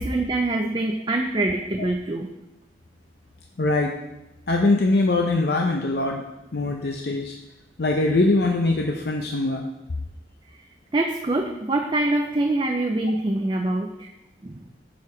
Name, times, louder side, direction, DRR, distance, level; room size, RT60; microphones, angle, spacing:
voice 1, 0.0-2.3 6.6-6.8 10.9-14.1 14.4-14.6, right 2 dB, 25° right, 2 dB, 0.5 m, -24 dB
voice 2, 3.6-3.9 4.5-6.2 6.5-7.3 7.8-9.7, left 2 dB, 65° left, 2 dB, 0.7 m, -22 dB
7.1 x 6.4 x 4.9 m, 0.95 s
head